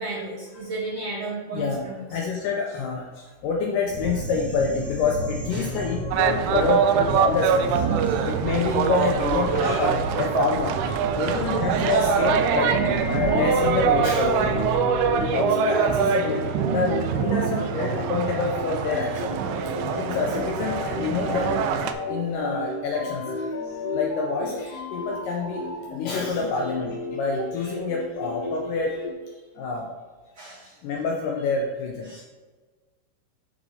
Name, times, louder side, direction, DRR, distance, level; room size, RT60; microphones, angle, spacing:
voice 1, 0.0-2.0 5.5-5.8 8.1-8.2 11.0-11.1 30.4-30.6 32.0-32.2, right 2 dB, 60° right, -7 dB, 1.7 m, -33 dB
voice 2, 1.5-7.8 8.3-10.7 11.2-12.8 13.1-14.5 15.1-19.4 19.9-23.5 23.9-25.6 25.9-29.1 29.6-29.9 30.8-32.1, left 4 dB, 80° left, 0 dB, 1.9 m, -27 dB
sound 1, 3.9-15.3, right 1 dB, 40° right, 1.1 m, -33 dB
sound 2, 6.1-21.9, right 7 dB, 85° right, 2.4 m, -24 dB
sound 3, 12.2-29.1, left 2 dB, 65° left, 1.6 m, -33 dB
7.4 x 5.9 x 2.7 m, 1.4 s
omnidirectional pair, 4.4 m